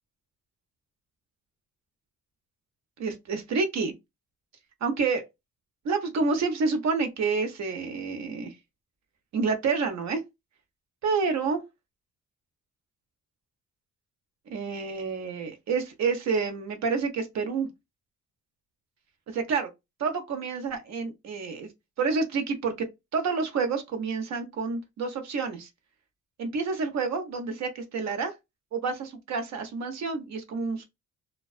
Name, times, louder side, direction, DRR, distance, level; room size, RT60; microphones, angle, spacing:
voice 1, 3.0-3.9 4.8-5.2 5.8-8.5 9.3-10.2 11.0-11.6 14.5-17.7 19.3-19.7 20.0-21.7 22.0-22.9 23.1-25.7 26.4-28.3 28.7-30.8, right 4 dB, 65° right, 0.8 m, -28 dB
2.3 x 2.2 x 2.4 m
cardioid pair, 90°, 30 cm